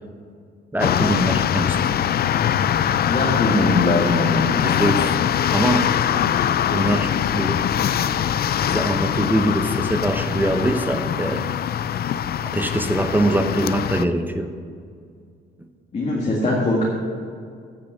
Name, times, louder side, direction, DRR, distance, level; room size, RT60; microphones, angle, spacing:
voice 1, 0.7-1.9 4.5-5.2 5.5-5.9 6.7-7.7 8.6-11.4 12.4-14.5, right 1 dB, 10° right, 7 dB, 0.8 m, -23 dB
sound 1, 0.8-14.0, left 9 dB, 50° left, 0.4 m, -22 dB
voice 2, 3.1-4.5 15.9-16.8, left 2 dB, 35° left, -3 dB, 2.0 m, -21 dB
9.0 x 8.5 x 6.1 m, 2.2 s
cardioid pair, 90°, 20 cm